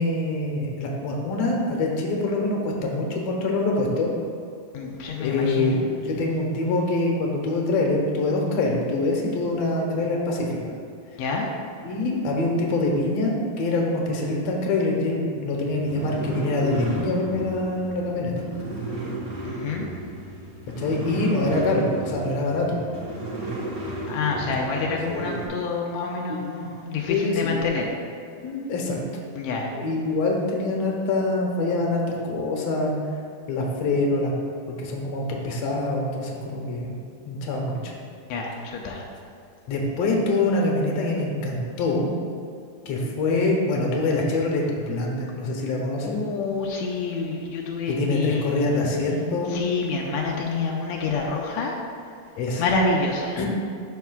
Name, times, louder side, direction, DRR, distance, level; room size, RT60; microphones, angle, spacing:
voice 1, 0.0-4.1 5.2-10.6 11.8-18.5 20.8-22.8 24.4-24.7 25.1-25.4 27.1-27.6 28.4-29.0 29.7-33.0 33.5-34.3 34.8-36.9 37.3-37.9 39.7-42.1 42.9-46.2 47.9-49.6 52.4-52.6 53.4-53.5, left 2 dB, 65° left, -1 dB, 1.7 m, -25 dB
voice 2, 4.7-5.8 11.2-11.5 19.4-19.8 24.1-27.9 29.3-29.7 38.3-39.0 46.0-48.6 49.5-51.8 52.6-53.4, left 4 dB, 85° left, -1 dB, 1.5 m, -27 dB
sound 1, 15.6-25.5, right 2 dB, 45° right, 2.4 m, -34 dB
12.5 x 5.7 x 2.3 m, 2.4 s
omnidirectional pair, 4.0 m